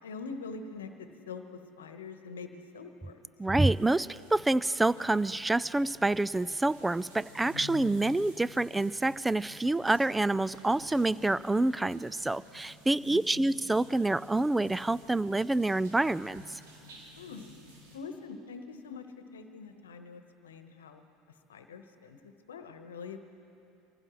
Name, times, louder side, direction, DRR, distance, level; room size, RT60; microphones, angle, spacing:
voice 1, 0.0-3.3 13.1-13.5 17.2-17.4 17.9-21.0 21.5-23.3, left 4 dB, 85° left, 7 dB, 1.0 m, -44 dB
voice 2, 3.4-16.6, right 2 dB, 10° right, 19 dB, 0.3 m, -27 dB
sound 1, 3.7-18.0, left 3 dB, 80° right, 3.4 m, -52 dB
25.0 x 15.5 x 3.1 m, 2.9 s
hypercardioid pair, 80°, 0 cm